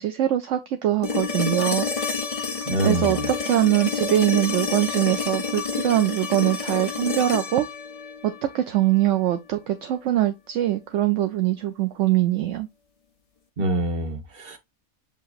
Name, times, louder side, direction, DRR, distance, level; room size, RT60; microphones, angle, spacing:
voice 1, 0.0-1.8 2.8-3.2 3.4-7.6 8.2-12.7, right 13 dB, 65° right, 0.9 m, -22 dB
sound 1, 1.0-9.1 11.2-11.3, left 5 dB, 35° left, 0.6 m, -29 dB
voice 2, 2.7-3.3 13.6-14.6, right 1 dB, 40° right, 1.4 m, -26 dB
7.2 x 2.9 x 2.4 m
omnidirectional pair, 1.5 m